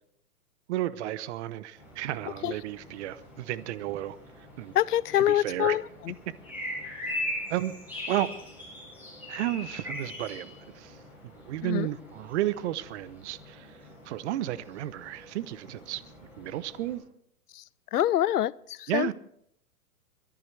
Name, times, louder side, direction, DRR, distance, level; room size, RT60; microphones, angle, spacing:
voice 1, 0.7-4.2 4.6-4.7 5.2-5.8 7.5-7.7 8.1-8.3 9.3-11.0 11.5-13.8 14.1-16.0 16.4-17.0 18.9-19.1, right 14 dB, 50° right, 0.8 m, -32 dB
sound 1, 1.7-16.9, left 1 dB, 5° right, 7.5 m, -42 dB
voice 2, 4.7-6.1 11.6-11.9 17.6-17.7 17.9-19.1, left 12 dB, 85° left, 0.6 m, -26 dB
21.5 x 14.0 x 3.4 m
hypercardioid pair, 125°, 46 cm